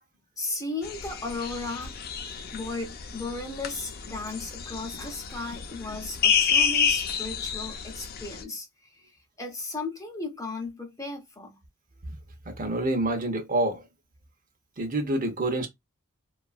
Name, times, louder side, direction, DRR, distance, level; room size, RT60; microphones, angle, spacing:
voice 1, 0.4-2.0 2.5-8.7 9.0-9.1 9.4-11.6, left 2 dB, 15° left, 0.7 m, -35 dB
sound 1, 0.8-8.4, left 7 dB, 50° left, 0.4 m, -29 dB
voice 2, 12.6-13.8 14.8-15.7, right 2 dB, 40° right, 0.7 m, -27 dB
2.9 x 2.4 x 2.4 m
head